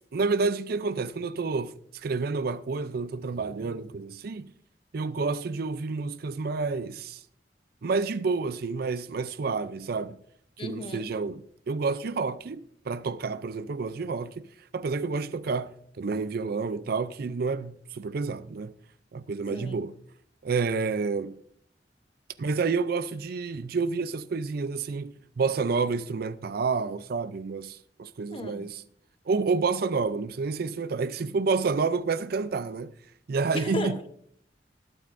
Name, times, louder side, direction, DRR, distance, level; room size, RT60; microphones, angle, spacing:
voice 1, 0.1-4.5 4.9-7.2 7.8-10.2 10.6-14.5 14.7-18.7 19.1-19.9 20.4-21.4 22.4-28.8 29.3-32.9 33.3-34.0, right 4 dB, 60° right, 0.5 m, -29 dB
voice 2, 10.6-11.1 19.5-19.8 28.3-28.7 33.5-34.1, left 2 dB, 30° left, 0.9 m, -35 dB
20.0 x 8.9 x 2.6 m
head